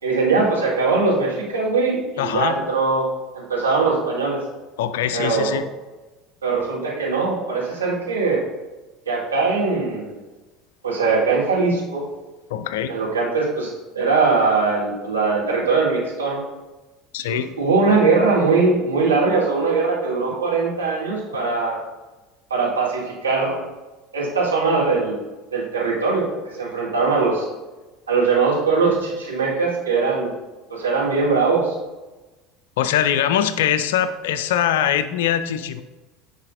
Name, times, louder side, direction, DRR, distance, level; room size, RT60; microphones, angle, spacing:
voice 1, 0.0-4.4 5.1-5.5 6.4-8.4 9.1-10.2 10.8-12.0 12.9-16.4 17.2-21.8 22.5-23.6 24.1-25.2 25.5-27.5 28.1-30.3 30.7-31.8, right 4 dB, 80° right, -6 dB, 1.8 m, -21 dB
voice 2, 2.2-2.6 4.8-5.6 12.5-12.9 17.1-17.5 32.8-35.8, left 10 dB, 65° left, 12 dB, 0.4 m, -22 dB
9.4 x 5.5 x 2.6 m, 1.2 s
figure-of-eight pair, 70°, 0 cm